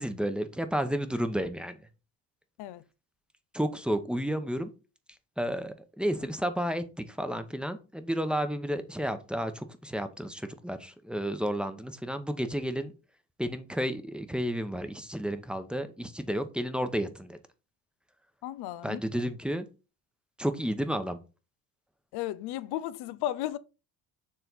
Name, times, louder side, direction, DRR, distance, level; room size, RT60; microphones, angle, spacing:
voice 1, 0.0-1.8 3.5-4.7 5.4-12.9 13.4-17.4 18.8-19.6 20.4-21.2, equal, ahead, 0.8 m, -31 dB
voice 2, 18.4-19.0 22.1-23.6, left 13 dB, 80° left, 0.5 m, -34 dB
7.1 x 3.3 x 4.0 m
cardioid pair, 85°, 38 cm